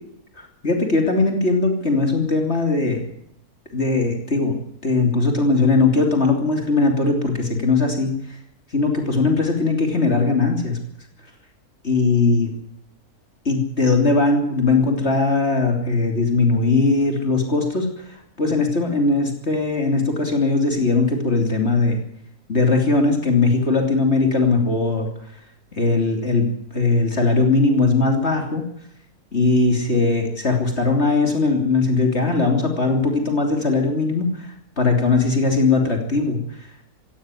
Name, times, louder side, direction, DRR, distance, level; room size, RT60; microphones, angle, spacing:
voice 1, 0.3-3.0 3.7-4.6 4.8-8.4 8.7-10.8 11.8-12.5 13.4-22.0 22.5-25.1 25.7-28.6 29.3-36.7, left 3 dB, 45° left, 3 dB, 3.4 m, -19 dB
17.0 x 16.5 x 9.7 m, 0.72 s
omnidirectional pair, 1.6 m